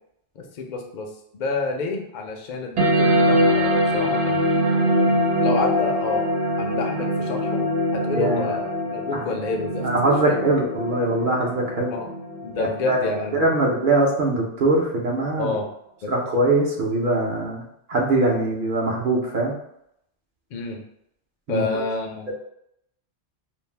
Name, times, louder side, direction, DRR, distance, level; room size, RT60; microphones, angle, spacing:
voice 1, 0.4-4.5 5.4-6.3 6.6-9.9 10.2-10.4 11.9-12.1 12.4-13.5 15.4-15.7 16.0-16.1 20.5-20.8 21.5-22.3, left 3 dB, 60° left, 2 dB, 0.5 m, -29 dB
sound 1, 2.8-13.8, equal, 75° right, 1.0 m, -23 dB
voice 2, 8.1-8.5 9.1-9.2 9.8-11.9 12.6-13.0 13.3-15.5 16.1-17.6 17.9-19.6 21.5-21.6, right 2 dB, 55° right, -1 dB, 0.7 m, -22 dB
2.5 x 2.0 x 3.1 m, 0.75 s
omnidirectional pair, 1.2 m